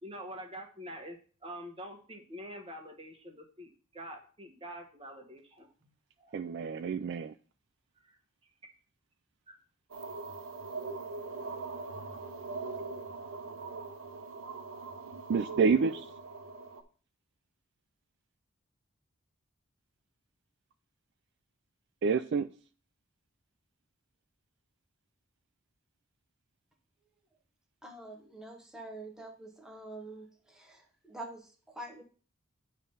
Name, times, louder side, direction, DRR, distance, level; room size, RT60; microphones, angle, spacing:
voice 1, 0.0-5.7 6.2-6.4 8.0-8.2 9.5-9.6, equal, 25° right, 2 dB, 1.2 m, -46 dB
voice 2, 6.3-7.3 15.3-16.0 22.0-22.5, right 5 dB, 55° right, 9 dB, 0.3 m, -28 dB
sound 1, 9.9-16.8, right 3 dB, 90° right, 0.9 m, -41 dB
voice 3, 27.8-32.0, right 2 dB, 5° right, 1 dB, 0.9 m, -46 dB
9.1 x 3.4 x 5.5 m, 0.41 s
head